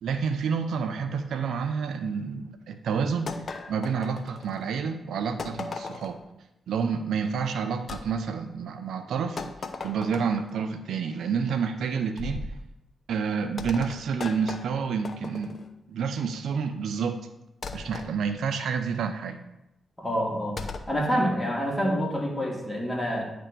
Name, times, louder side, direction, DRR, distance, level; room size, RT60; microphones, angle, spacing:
voice 1, 0.0-3.3 3.7-6.2 6.7-9.4 9.8-12.5 13.1-15.6 15.9-17.2 17.7-19.4, right 6 dB, 80° right, 8 dB, 0.6 m, -29 dB
sound 1, 3.3-4.7 5.4-6.2 7.9-8.1 9.4-10.5 12.2-12.6 13.6-15.7 17.6-18.1 20.6-21.0, left 4 dB, 50° left, 0.7 m, -37 dB
voice 2, 20.0-20.6 20.9-23.2, equal, 15° left, -2 dB, 2.8 m, -27 dB
9.9 x 3.4 x 6.8 m, 0.88 s
cardioid pair, 60°, 0 cm